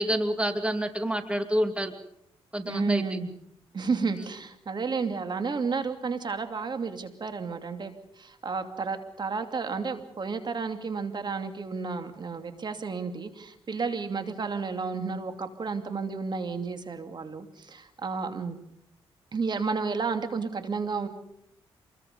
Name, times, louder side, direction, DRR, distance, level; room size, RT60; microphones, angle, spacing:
voice 1, 0.0-1.9 2.5-3.0, equal, 10° right, 7 dB, 2.6 m, -27 dB
voice 2, 2.6-3.3 3.7-18.6 19.3-21.1, right 4 dB, 45° right, 7 dB, 2.8 m, -32 dB
27.5 x 22.0 x 5.5 m, 0.76 s
cardioid pair, 80°, 10 cm